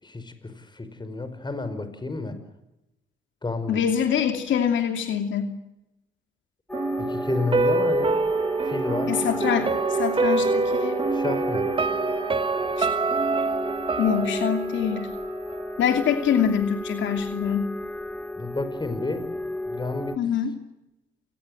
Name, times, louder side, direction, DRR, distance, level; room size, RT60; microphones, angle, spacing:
voice 1, 0.0-2.4 3.4-3.8 7.0-8.2 8.6-9.1 11.1-11.7 18.4-20.2, left 3 dB, 20° left, 10 dB, 5.2 m, -31 dB
voice 2, 3.7-5.5 9.1-11.0 12.8-12.9 14.0-15.1 15.8-17.7 20.2-20.5, left 8 dB, 70° left, 6 dB, 2.8 m, -24 dB
sound 1, 6.7-20.2, left 1 dB, 5° left, 1.5 m, -34 dB
sound 2, 6.7-15.7 16.0-16.1, right 3 dB, 25° right, 1.1 m, -26 dB
28.5 x 20.0 x 7.9 m, 0.92 s
cardioid pair, 90°, 20 cm